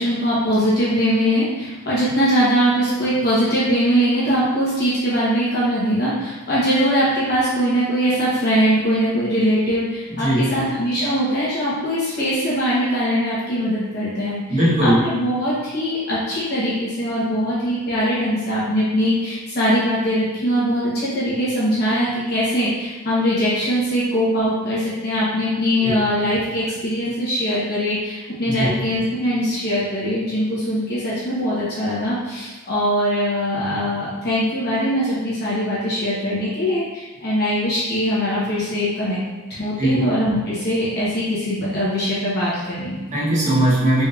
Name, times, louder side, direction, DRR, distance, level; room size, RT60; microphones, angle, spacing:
voice 1, 0.0-39.2 39.6-43.0, equal, 50° left, -9 dB, 1.0 m, -21 dB
voice 2, 10.1-10.5 14.5-15.1 25.8-26.0 28.5-28.7 39.8-40.0 43.1-44.0, right 1 dB, 35° right, -7 dB, 1.0 m, -19 dB
4.2 x 3.3 x 2.5 m, 1.3 s
head